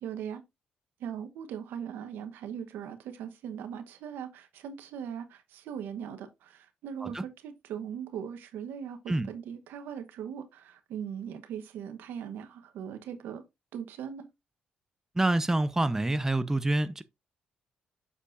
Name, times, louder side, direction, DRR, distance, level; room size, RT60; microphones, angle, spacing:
voice 1, 0.0-0.4 1.0-13.4 13.7-14.3, right 8 dB, 80° right, 1.0 m, -39 dB
voice 2, 15.1-17.0, right 2 dB, 15° right, 0.7 m, -27 dB
7.2 x 6.7 x 2.5 m
supercardioid pair, 65°, 3 cm